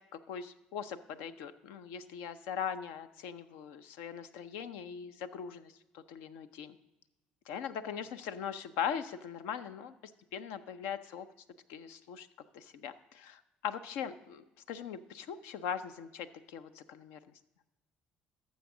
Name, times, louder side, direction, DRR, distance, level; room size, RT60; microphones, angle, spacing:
voice 1, 0.1-6.8 7.5-9.9 10.3-11.3 11.7-12.3 12.5-17.2, left 8 dB, 70° left, 11 dB, 0.5 m, -40 dB
12.0 x 7.2 x 3.7 m, 1.0 s
hypercardioid pair, 60°, 4 cm